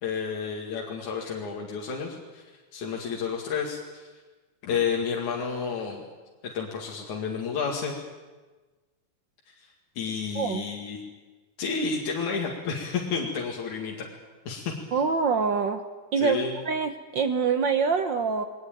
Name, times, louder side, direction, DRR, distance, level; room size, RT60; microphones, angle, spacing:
voice 1, 0.0-2.4 2.7-4.1 4.6-6.0 6.4-8.0 10.0-11.0 11.6-14.1 14.5-14.7 16.2-16.6, left 5 dB, 80° left, -2 dB, 3.6 m, -30 dB
voice 2, 10.3-10.6 14.9-15.8 16.1-16.4 16.6-18.4, right 5 dB, 80° right, 8 dB, 1.0 m, -25 dB
22.0 x 19.5 x 9.1 m, 1.3 s
omnidirectional pair, 3.4 m